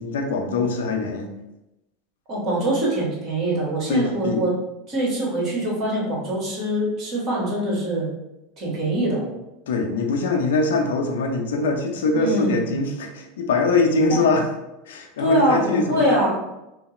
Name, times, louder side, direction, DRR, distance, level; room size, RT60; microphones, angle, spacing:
voice 1, 0.0-1.4 3.9-4.4 9.7-14.5 14.9-16.3, left 3 dB, 80° left, 3 dB, 0.5 m, -22 dB
voice 2, 2.3-4.5 4.9-8.1 8.6-9.3 12.1-12.6 14.1-14.2 15.2-16.3, right 1 dB, 50° right, -4 dB, 1.4 m, -23 dB
3.1 x 2.0 x 3.0 m, 0.92 s
hypercardioid pair, 95°, 0 cm